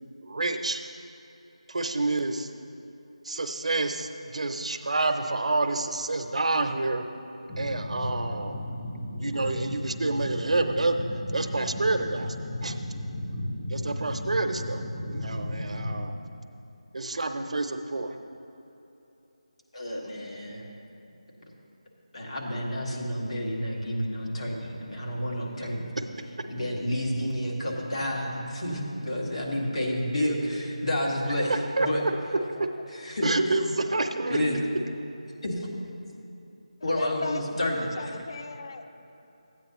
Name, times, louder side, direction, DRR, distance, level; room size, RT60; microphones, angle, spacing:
voice 1, 0.2-0.8 1.7-2.5 3.2-7.0 7.6-8.6 9.2-11.0 11.3-12.3 12.6-12.7 13.7-16.1 16.9-18.2 31.8-31.9 33.2-34.4, right 2 dB, 65° right, 7 dB, 0.6 m, -28 dB
sound 1, 7.5-16.1, left 1 dB, 20° left, 1.1 m, -34 dB
voice 2, 19.7-20.7 22.1-26.0 26.5-32.0 32.9-33.3 34.3-34.6 35.4-35.6 36.8-38.1, equal, 60° left, -2 dB, 1.9 m, -30 dB
voice 3, 37.0-38.8, left 3 dB, 40° left, 8 dB, 0.4 m, -37 dB
13.5 x 8.8 x 3.0 m, 3.0 s
figure-of-eight pair, 170°, 4 cm